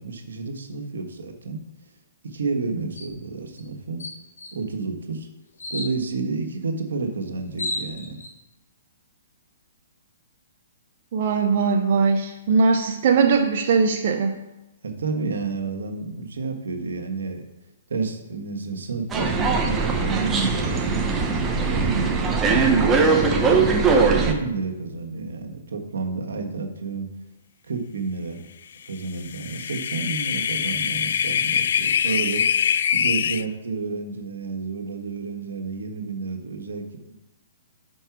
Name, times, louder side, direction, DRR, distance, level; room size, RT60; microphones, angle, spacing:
voice 1, 0.0-1.6 2.2-4.0 4.5-5.3 5.7-8.2 14.8-17.5 17.9-21.1 21.7-22.1 22.5-23.8 24.1-27.1 27.6-28.5 28.9-32.6 32.9-37.2, right 4 dB, 85° right, 3 dB, 1.3 m, -30 dB
sound 1, 3.0-3.2 3.6-3.7 4.0-4.5 5.6-5.9 7.1-7.2 7.4-8.3, left 2 dB, 90° left, 1.7 m, -32 dB
voice 2, 11.1-14.3, right 5 dB, 50° right, 3 dB, 0.7 m, -20 dB
sound 2, 19.1-24.3, right 4 dB, 15° right, 0.8 m, -20 dB
sound 3, 29.1-33.4, left 8 dB, 65° left, 0.3 m, -23 dB
5.8 x 5.4 x 5.9 m, 0.99 s
hypercardioid pair, 150°, 0 cm